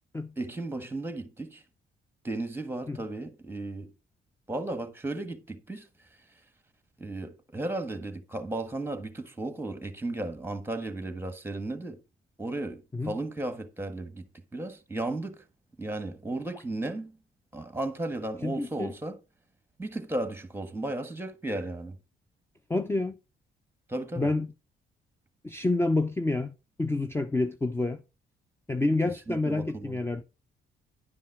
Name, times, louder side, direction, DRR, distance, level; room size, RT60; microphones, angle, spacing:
voice 1, 0.4-1.6 2.2-3.9 4.5-5.9 7.0-12.0 12.4-14.2 14.5-15.4 15.8-17.2 17.5-19.2 19.8-22.0 23.9-24.3 29.3-30.0, right 2 dB, 10° right, 1.5 m, -35 dB
voice 2, 18.4-18.9 22.7-23.1 24.2-24.5 25.4-26.5 26.8-28.0 28.7-30.2, left 2 dB, 10° left, 0.6 m, -28 dB
10.5 x 5.5 x 4.8 m
cardioid pair, 90°, 20 cm